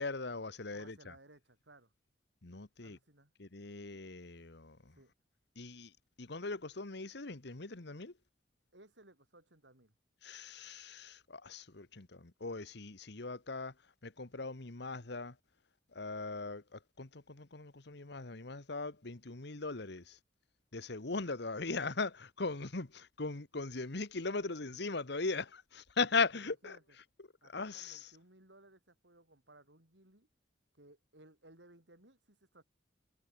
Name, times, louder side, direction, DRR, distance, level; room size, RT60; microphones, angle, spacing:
voice 1, 0.0-0.9 2.4-3.0 3.4-4.8 5.6-5.9 6.2-8.1 10.2-13.7 14.0-15.3 15.9-20.2 20.7-26.8 27.5-28.0, left 4 dB, 65° left, 1.5 m, -39 dB
voice 2, 0.7-1.9 2.8-3.3 4.9-5.1 8.7-9.9 26.1-27.0 27.4-30.3 30.7-32.6, right 2 dB, 75° right, 7.6 m, -61 dB
head